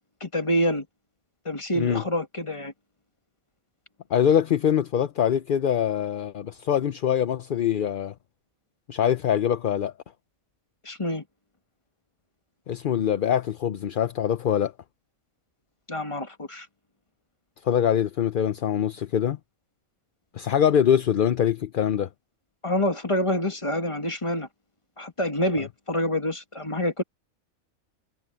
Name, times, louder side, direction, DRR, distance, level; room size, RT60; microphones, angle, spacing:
voice 1, 0.2-0.9 1.5-2.7 10.8-11.2 15.9-16.7 22.6-24.5 25.0-27.0, left 1 dB, 25° left, 1.9 m, -27 dB
voice 2, 4.1-8.1 8.9-9.9 12.7-14.7 17.6-19.4 20.3-22.1, left 9 dB, 50° left, 0.7 m, -23 dB
omnidirectional pair, 1.4 m